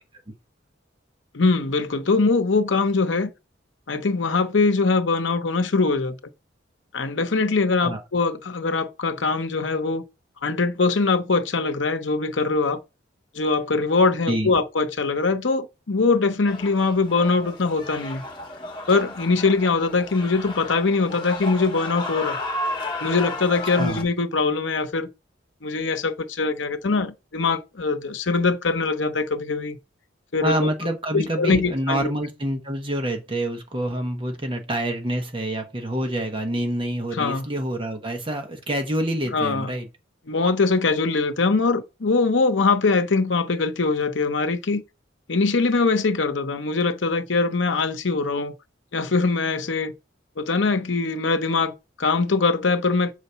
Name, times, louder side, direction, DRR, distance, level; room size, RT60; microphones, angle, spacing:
voice 1, 1.3-3.3 3.9-6.2 6.9-10.0 10.4-12.8 13.3-18.2 18.9-22.4 23.0-25.1 25.6-29.8 30.3-30.7 31.1-32.1 37.2-37.4 39.3-39.7 40.3-44.8 45.3-48.5 48.9-49.9 50.4-53.1, left 3 dB, 75° left, 0.8 m, -22 dB
sound 1, 16.5-24.0, left 2 dB, 25° left, 1.5 m, -33 dB
voice 2, 30.4-39.9, right 1 dB, 25° right, 1.0 m, -27 dB
6.4 x 4.1 x 5.6 m
head